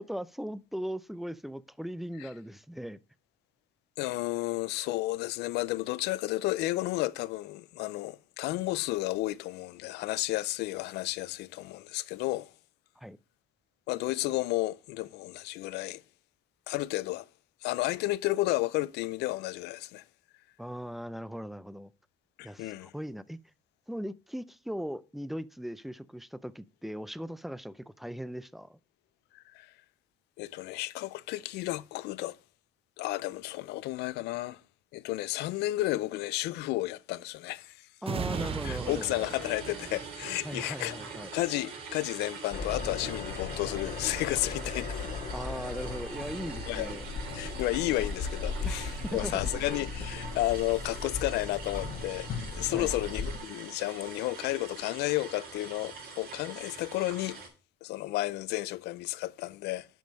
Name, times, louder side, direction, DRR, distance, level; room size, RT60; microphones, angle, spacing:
voice 1, 0.0-3.0 13.0-13.2 20.6-21.9 22.4-23.4 23.9-28.8 38.0-39.1 40.4-41.3 45.3-47.0 48.7-49.3 52.7-52.9, equal, ahead, 0.4 m, -39 dB
voice 2, 4.0-12.5 13.9-16.0 16.7-17.3 17.6-20.0 22.4-22.9 29.3-29.7 30.4-32.4 33.0-34.6 34.9-37.9 38.6-40.9 41.3-45.0 46.7-46.9 47.3-52.3 52.5-57.4 57.8-59.9, left 17 dB, 85° left, 0.5 m, -32 dB
sound 1, 38.0-51.3 51.8-51.9, right 6 dB, 35° right, 0.8 m, -43 dB
sound 2, 38.3-57.5, right 4 dB, 65° right, 3.3 m, -44 dB
sound 3, 42.5-53.4, left 5 dB, 55° left, 1.2 m, -37 dB
7.5 x 5.4 x 5.2 m
cardioid pair, 110°, 17 cm